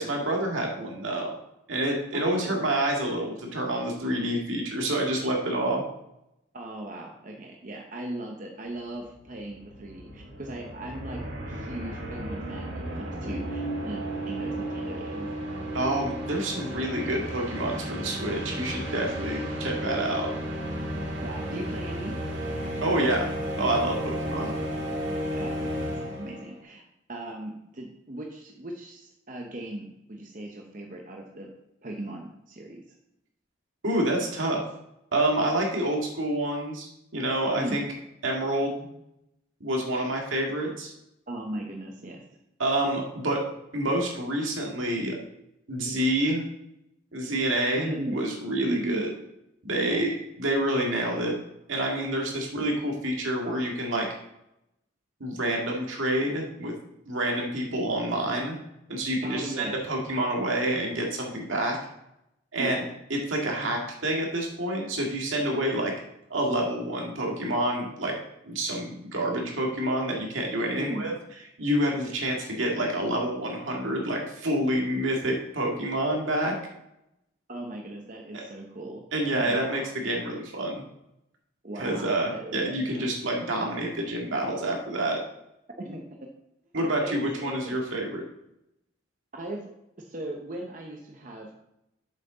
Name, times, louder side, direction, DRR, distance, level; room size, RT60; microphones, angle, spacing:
voice 1, 0.0-1.4 1.7-5.8 15.7-20.3 22.8-23.3 23.6-24.5 33.8-34.6 35.1-37.8 38.2-38.9 39.6-40.9 42.6-43.4 43.7-45.2 45.7-46.4 47.1-49.1 49.6-51.3 51.7-54.1 55.2-56.7 57.1-58.5 58.9-61.8 62.5-62.8 63.1-65.9 66.3-68.1 68.5-71.1 71.6-76.5 78.3-78.4 79.1-80.8 81.8-85.2 86.7-88.2, right 1 dB, 80° right, 0 dB, 1.9 m, -28 dB
voice 2, 2.1-2.7 6.5-11.2 11.5-15.3 21.2-22.1 25.4-26.8 27.1-31.5 31.8-32.8 37.6-37.9 41.3-42.2 47.8-48.2 48.6-49.1 49.8-50.0 59.2-59.7 62.6-62.8 70.8-71.1 77.5-79.0 79.4-79.9 81.6-83.1 85.8-86.3 87.0-87.8 89.3-89.7 90.0-91.5, right 1 dB, 40° right, 1 dB, 0.8 m, -38 dB
sound 1, 8.8-8.9 9.1-26.5, equal, 60° right, 2.0 m, -33 dB
7.3 x 6.3 x 3.9 m, 0.84 s
head